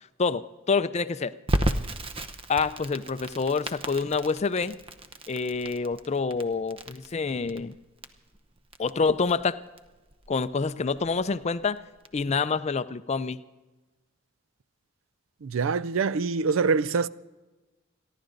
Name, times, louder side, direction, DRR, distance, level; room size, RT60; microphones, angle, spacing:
voice 1, 0.2-1.3 2.5-4.8 5.3-7.7 8.8-9.6 10.3-11.8 12.1-13.4, left 4 dB, 35° left, 0.5 m, -27 dB
Crackle, 1.5-12.2, right 1 dB, 25° right, 0.8 m, -34 dB
voice 2, 15.4-17.1, right 4 dB, 80° right, 0.5 m, -25 dB
28.5 x 11.5 x 3.9 m
head